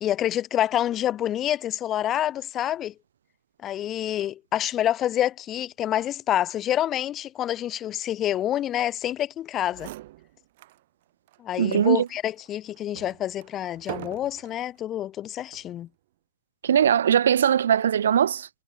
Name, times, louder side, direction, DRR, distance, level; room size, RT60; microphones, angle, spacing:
voice 1, 0.0-2.9 3.6-9.9 11.4-15.9, left 12 dB, 20° left, 1.4 m, -27 dB
sound 1, 9.4-9.5 9.7-10.8 11.3-11.4 12.0-14.6 15.4-15.8, right 17 dB, 50° right, 1.5 m, -42 dB
voice 2, 11.6-12.1 16.6-18.5, right 9 dB, 80° right, 0.5 m, -20 dB
hypercardioid pair, 150°, 0 cm